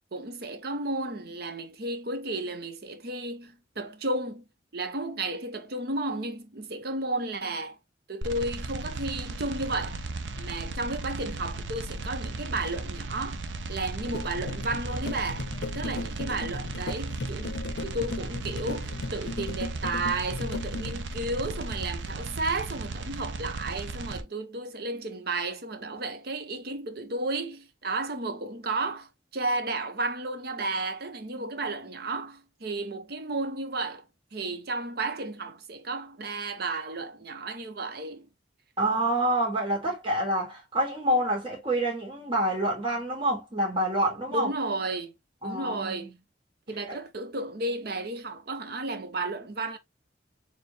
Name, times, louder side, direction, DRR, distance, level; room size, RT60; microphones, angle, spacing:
voice 1, 0.1-4.4 4.7-7.8 8.1-10.0 10.4-13.4 13.7-15.5 15.7-34.0 34.3-38.3 44.3-45.1 45.4-46.1 46.7-49.8, right 2 dB, 60° right, 0.9 m, -33 dB
sound 1, 8.2-24.2, right 2 dB, 85° right, 0.7 m, -36 dB
sound 2, 14.0-21.0, left 3 dB, 65° left, 0.6 m, -37 dB
voice 2, 38.8-44.5 45.4-46.0 46.9-47.0, right 1 dB, 30° right, 2.3 m, -27 dB
4.4 x 3.5 x 3.2 m
head